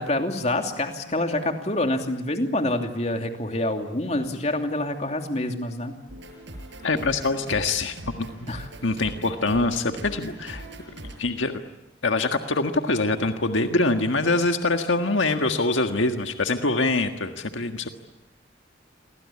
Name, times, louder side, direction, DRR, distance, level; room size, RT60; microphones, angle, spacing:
voice 1, 0.0-5.9 8.5-8.7, left 1 dB, 35° left, 4 dB, 2.8 m, -26 dB
sound 1, 6.1-11.1, right 1 dB, 75° right, 7.0 m, -41 dB
voice 2, 6.8-8.3 8.8-10.6 11.2-11.5 12.0-17.9, left 2 dB, 90° left, 6 dB, 1.7 m, -24 dB
29.0 x 24.0 x 8.6 m, 0.89 s
head